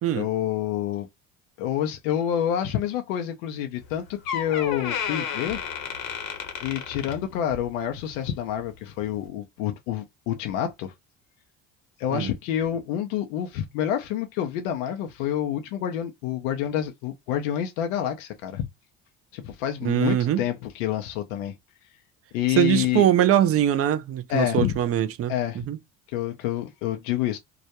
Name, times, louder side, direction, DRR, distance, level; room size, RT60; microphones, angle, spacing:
voice 1, 0.1-1.1 1.6-5.6 6.6-10.9 12.0-18.7 19.3-21.5 22.3-23.1 24.3-24.7 25.3-25.7 26.1-27.4, left 10 dB, 85° left, 0.6 m, -28 dB
Door, 3.8-3.9 4.2-7.7 8.1-8.4 9.1-9.2, left 7 dB, 65° left, 1.0 m, -32 dB
voice 2, 19.8-20.4 22.6-25.3 25.7-25.8, right 11 dB, 40° right, 0.4 m, -22 dB
2.3 x 2.1 x 2.8 m
supercardioid pair, 90°, 38 cm